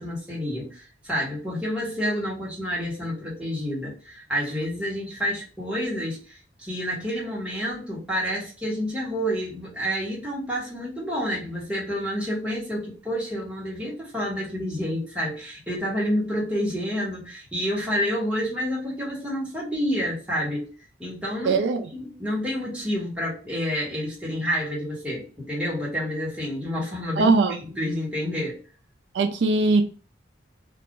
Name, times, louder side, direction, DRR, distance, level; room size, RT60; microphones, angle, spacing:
voice 1, 0.0-20.7 21.0-21.6 21.9-27.3 27.8-28.6, equal, 5° right, 1.2 m, -29 dB
voice 2, 21.4-21.9 27.2-27.6 29.1-29.8, right 3 dB, 75° right, 0.4 m, -20 dB
2.5 x 2.4 x 3.6 m
head